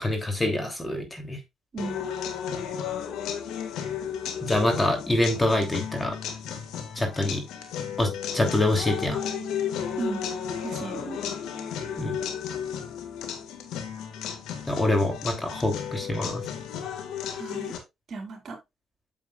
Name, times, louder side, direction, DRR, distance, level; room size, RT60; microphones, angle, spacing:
voice 1, 0.0-1.4 4.4-6.2 6.9-7.4 8.0-9.2 12.0-12.2 14.7-16.4, left 1 dB, 20° left, 3.0 m, -25 dB
voice 2, 1.7-2.1 10.0-10.3 10.6-11.2 17.3-17.8 18.1-18.6, right 3 dB, 50° right, 4.2 m, -35 dB
sound 1, 1.8-17.8, left 8 dB, 90° left, 1.9 m, -34 dB
Bass guitar, 9.1-15.3, left 3 dB, 40° left, 3.7 m, -44 dB
9.1 x 7.3 x 2.4 m
cardioid pair, 90°, 0 cm